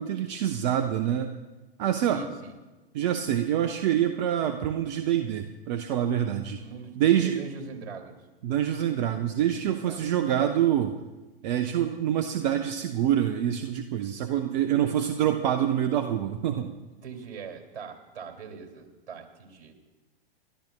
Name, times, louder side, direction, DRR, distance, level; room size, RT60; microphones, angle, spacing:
voice 1, 0.0-1.3 1.8-2.2 2.9-6.6 7.0-7.4 8.4-10.9 11.4-16.7, right 10 dB, 45° right, 5 dB, 0.8 m, -26 dB
voice 2, 2.1-2.5 6.6-8.2 9.9-10.0 17.0-19.7, right 5 dB, 65° right, 4 dB, 2.5 m, -41 dB
28.5 x 12.0 x 2.2 m, 1.1 s
hypercardioid pair, 110°, 29 cm